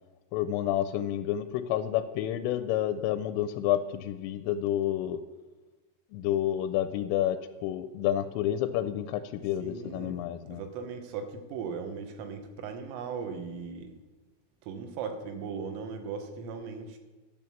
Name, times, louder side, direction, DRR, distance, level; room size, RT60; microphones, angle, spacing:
voice 1, 0.3-5.2 6.1-10.6, left 11 dB, 85° left, 11 dB, 3.0 m, -29 dB
voice 2, 9.6-10.2 10.5-14.0 14.6-17.0, right 5 dB, 85° right, 5 dB, 3.6 m, -38 dB
10.5 x 6.3 x 7.0 m, 1.2 s
omnidirectional pair, 5.7 m